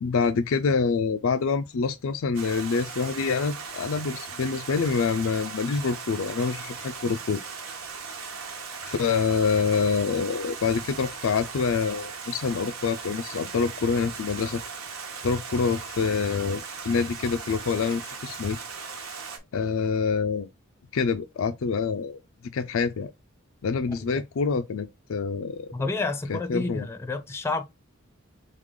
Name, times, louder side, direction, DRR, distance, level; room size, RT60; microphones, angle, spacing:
voice 1, 0.0-7.4 8.8-14.6 15.2-18.6 19.5-20.5 20.9-22.2 22.5-23.1 23.6-25.7 26.3-26.8, left 5 dB, 70° left, 0.4 m, -26 dB
Stream, 2.3-19.4, right 5 dB, 85° right, 1.2 m, -38 dB
voice 2, 25.7-27.6, left 3 dB, 10° left, 0.5 m, -30 dB
3.7 x 3.4 x 3.7 m
head